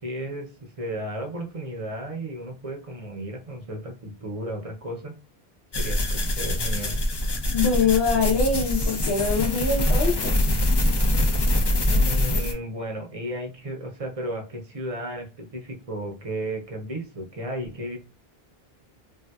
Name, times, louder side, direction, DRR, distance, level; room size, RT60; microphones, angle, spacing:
voice 1, 0.0-5.1 5.8-7.0 12.0-18.0, right 1 dB, 40° right, 3 dB, 0.6 m, -34 dB
sound 1, 5.7-12.5, left 1 dB, 40° left, 0.4 m, -23 dB
voice 2, 7.5-10.3, left 4 dB, 80° left, -3 dB, 1.0 m, -23 dB
3.4 x 2.7 x 2.2 m, 0.32 s
omnidirectional pair, 1.0 m